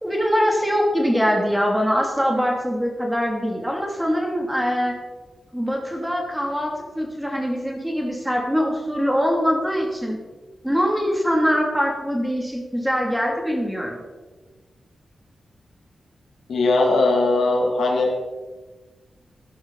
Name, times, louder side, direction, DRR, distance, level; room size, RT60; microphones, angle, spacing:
voice 1, 0.0-4.9 5.5-10.2 10.6-14.0, equal, 5° right, 0 dB, 2.7 m, -23 dB
voice 2, 16.5-18.1, left 2 dB, 85° left, 0 dB, 2.7 m, -19 dB
14.5 x 11.0 x 4.1 m, 1.3 s
wide cardioid pair, 110°, 0 cm